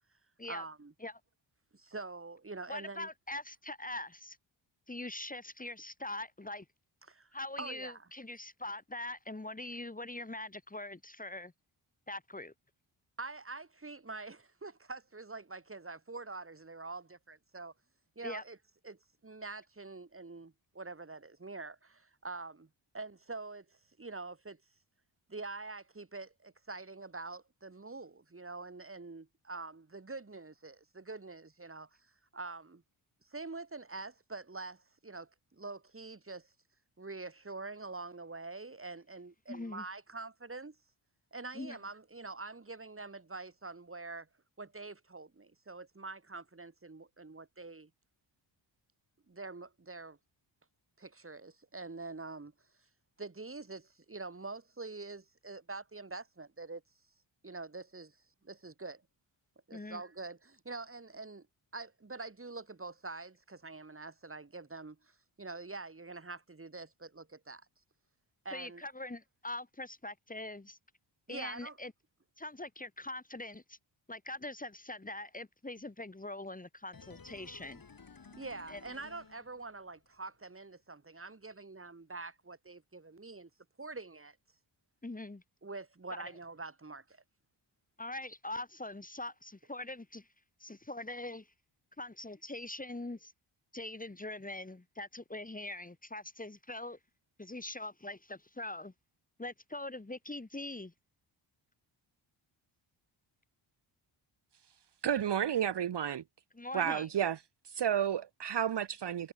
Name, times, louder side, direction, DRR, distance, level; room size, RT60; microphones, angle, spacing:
voice 1, 0.5-0.9 1.7-3.1 7.1-7.3 7.6-8.1 13.2-17.7 18.2-18.6 18.8-22.7 22.9-24.6 25.3-31.9 32.3-32.8 33.2-36.5 37.0-40.8 41.3-44.3 44.6-47.9 49.3-50.2 51.0-52.5 53.2-56.8 57.4-58.2 58.4-59.0 59.7-61.5 61.7-67.6 68.4-68.9 71.3-71.8 78.3-83.5 83.8-84.4 85.6-87.2, right 3 dB, 25° right, 4.1 m, -45 dB
voice 2, 2.7-4.4 4.9-6.7 7.3-11.5 12.1-12.5 18.2-18.4 39.5-39.8 41.5-41.8 59.7-60.0 68.5-70.8 71.3-71.9 72.4-73.8 74.1-77.8 78.7-78.8 85.0-85.4 88.0-90.3 90.6-91.5 92.0-93.3 93.7-97.0 97.4-98.9 99.4-100.9 106.6-107.1, left 2 dB, 15° left, 2.2 m, -42 dB
sound 1, 76.9-80.0 80.3-80.4, left 5 dB, 45° left, 6.1 m, -55 dB
voice 3, 105.0-106.2 106.7-107.4 107.6-109.3, right 9 dB, 55° right, 1.1 m, -31 dB
cardioid pair, 70°, 48 cm